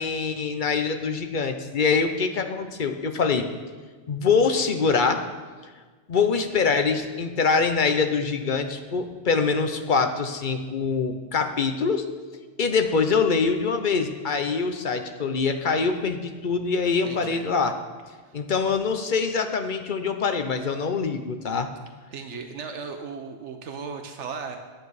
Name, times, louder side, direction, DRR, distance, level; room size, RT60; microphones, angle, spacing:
voice 1, 0.0-3.4 4.1-5.2 6.1-12.1 12.6-17.7 18.3-21.7, left 5 dB, 50° left, 7 dB, 0.8 m, -24 dB
voice 2, 17.0-17.5 18.2-18.3 22.1-24.6, right 5 dB, 85° right, 5 dB, 1.1 m, -36 dB
10.5 x 9.3 x 4.8 m, 1.4 s
omnidirectional pair, 1.2 m